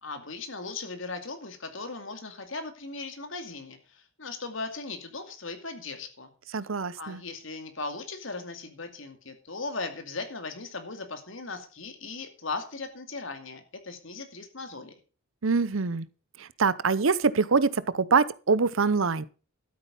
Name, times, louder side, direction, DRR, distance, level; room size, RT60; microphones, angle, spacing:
voice 1, 0.0-6.3 7.0-14.9, left 3 dB, 65° left, 2.5 m, -38 dB
voice 2, 6.5-7.2 15.4-16.1 16.4-19.2, right 4 dB, 70° right, 0.7 m, -24 dB
12.5 x 8.7 x 5.4 m
head